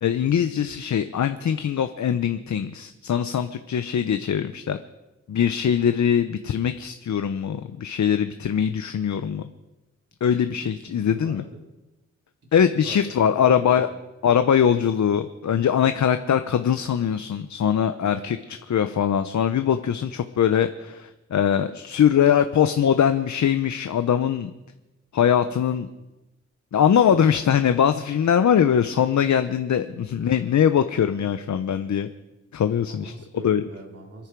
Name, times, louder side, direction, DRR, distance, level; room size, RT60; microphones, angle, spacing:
voice 1, 0.0-4.8 5.3-9.5 10.2-11.4 12.5-13.9 14.2-24.5 25.1-25.9 26.7-32.1 32.5-33.1 33.4-33.6, left 8 dB, 75° left, 9 dB, 0.8 m, -22 dB
voice 2, 10.6-11.6 12.5-14.0 18.0-18.3 27.1-27.2 30.2-30.5 32.9-34.3, right 2 dB, 55° right, 0 dB, 3.4 m, -42 dB
28.0 x 10.5 x 4.7 m, 1.0 s
wide cardioid pair, 105°, 29 cm